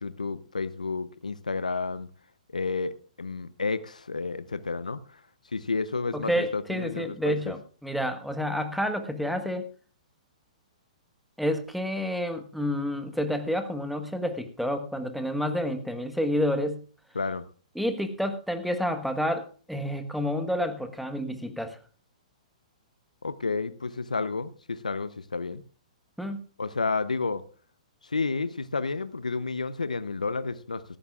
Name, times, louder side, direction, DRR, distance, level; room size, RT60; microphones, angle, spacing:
voice 1, 0.0-2.1 2.5-2.9 3.2-5.2 5.5-7.5 17.1-17.4 23.2-25.6 26.6-27.4 28.1-30.8, left 4 dB, 85° left, 15 dB, 0.7 m, -31 dB
voice 2, 6.1-9.7 11.4-16.8 17.7-21.8 26.2-26.4, equal, ahead, 7 dB, 1.3 m, -29 dB
17.5 x 14.0 x 2.4 m, 0.38 s
hypercardioid pair, 120°, 4 cm